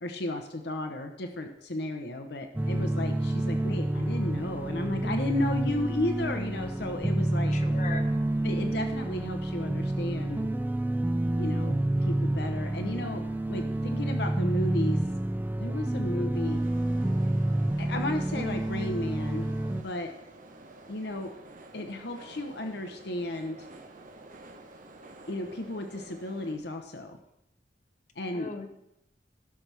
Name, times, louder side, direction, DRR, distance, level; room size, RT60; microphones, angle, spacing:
voice 1, 0.0-7.5 8.4-10.5 11.4-15.0 15.6-16.6 17.8-20.1 20.9-21.3 21.7-23.6 25.3-27.2 28.2-28.5, left 1 dB, 70° left, 5 dB, 0.9 m, -34 dB
sound 1, 2.6-19.8, right 1 dB, 10° right, 0.4 m, -29 dB
voice 2, 7.5-8.2 28.3-28.7, left 3 dB, 45° left, 4 dB, 1.0 m, -38 dB
sound 2, 16.3-26.6, right 2 dB, 50° right, 1.0 m, -50 dB
16.0 x 6.1 x 3.4 m, 0.81 s
head